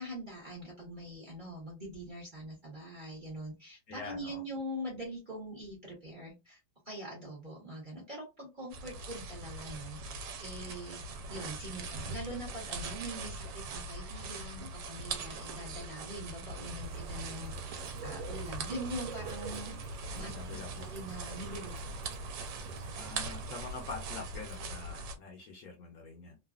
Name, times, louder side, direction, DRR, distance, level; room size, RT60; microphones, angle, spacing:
voice 1, 0.0-6.6 6.8-11.0 11.3-19.9 20.1-22.1, equal, 35° right, -3 dB, 0.9 m, -43 dB
voice 2, 3.9-4.4 20.2-20.9 22.9-26.4, left 4 dB, 60° left, 1 dB, 1.1 m, -45 dB
sound 1, 8.7-25.1, right 3 dB, 75° right, 1.3 m, -42 dB
Bird / Rain, 16.8-25.0, right 3 dB, 90° right, 1.3 m, -44 dB
3.1 x 2.4 x 2.4 m, 0.26 s
omnidirectional pair, 2.0 m